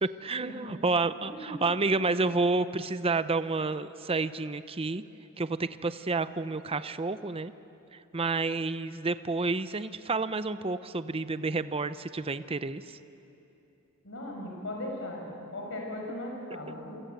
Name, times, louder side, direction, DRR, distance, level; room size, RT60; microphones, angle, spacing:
voice 1, 0.0-5.0 5.4-7.5 7.9-12.8, right 3 dB, 25° right, 13 dB, 0.7 m, -30 dB
voice 2, 1.2-1.7 14.0-17.0, left 1 dB, 65° left, 0 dB, 5.5 m, -38 dB
29.0 x 24.5 x 8.0 m, 2.8 s
head